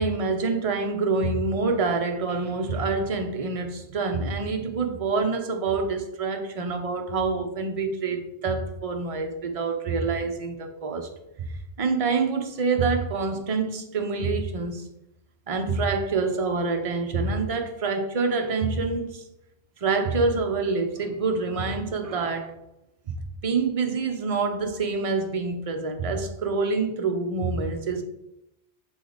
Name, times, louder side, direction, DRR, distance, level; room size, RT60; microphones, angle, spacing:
voice 1, 0.0-11.1 11.4-14.8 15.5-19.2 19.8-22.5 23.1-23.2 23.4-28.0, right 4 dB, 35° right, 4 dB, 0.7 m, -26 dB
7.7 x 3.3 x 3.9 m, 0.86 s
omnidirectional pair, 1.2 m